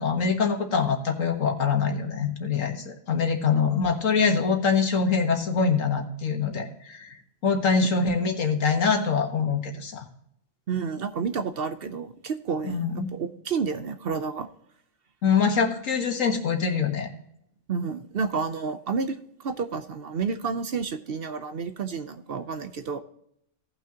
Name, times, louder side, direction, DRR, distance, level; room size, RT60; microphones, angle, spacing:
voice 1, 0.0-7.2 7.4-10.0 12.6-13.1 15.2-17.1, left 5 dB, 85° left, 4 dB, 1.8 m, -24 dB
voice 2, 10.7-14.5 17.7-23.0, right 5 dB, 55° right, 9 dB, 0.8 m, -30 dB
17.5 x 6.0 x 2.8 m, 0.74 s
omnidirectional pair, 1.3 m